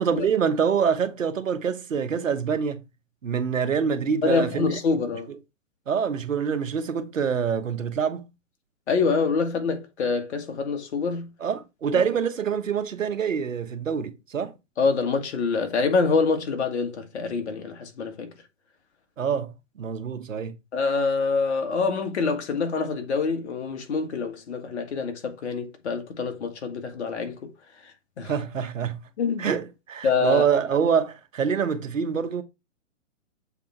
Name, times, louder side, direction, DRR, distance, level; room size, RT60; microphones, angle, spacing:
voice 1, 0.0-2.8 3.2-4.8 5.3-5.4 5.9-8.3 11.4-14.5 19.2-20.6 28.2-29.0 29.4-32.4, right 6 dB, 80° right, 1.3 m, -26 dB
voice 2, 4.2-5.3 8.9-11.3 11.9-12.0 14.8-18.3 20.7-27.5 28.2-28.3 29.2-29.5 30.0-30.4, left 4 dB, 55° left, 1.9 m, -26 dB
7.0 x 3.7 x 4.5 m
hypercardioid pair, 130°, 38 cm